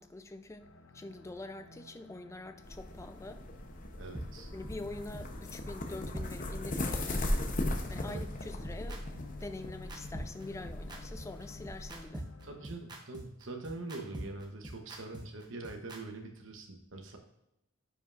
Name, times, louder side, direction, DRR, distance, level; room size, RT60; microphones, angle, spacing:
voice 1, 0.0-3.4 4.5-7.3 7.9-9.1 9.4-12.3, left 2 dB, 15° left, 0.3 m, -45 dB
sound 1, 0.6-12.7, left 4 dB, 80° left, 0.6 m, -53 dB
sound 2, 2.6-12.1, left 1 dB, 40° left, 0.7 m, -38 dB
voice 2, 4.0-4.5 8.1-8.2 12.4-17.2, right 2 dB, 70° right, 0.9 m, -43 dB
sound 3, 4.1-4.2 4.6-4.7 5.1-5.2 5.6-5.7 6.1-6.3 6.6-6.7 7.1-7.2 7.6-7.7 8.1-16.0, right 1 dB, 20° right, 0.9 m, -43 dB
9.8 x 5.5 x 2.5 m
head